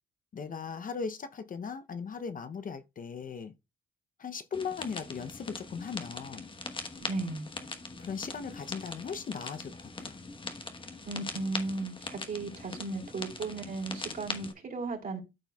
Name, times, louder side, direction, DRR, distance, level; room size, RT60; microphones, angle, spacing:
voice 1, 0.3-3.5 4.2-6.5 8.0-10.2, left 6 dB, 45° left, 0.7 m, -38 dB
sound 1, 4.5-14.5, left 3 dB, 25° left, 1.2 m, -41 dB
voice 2, 7.0-7.5 11.0-15.2, right 3 dB, 45° right, 3.7 m, -36 dB
13.0 x 4.5 x 2.3 m
cardioid pair, 90°, 20 cm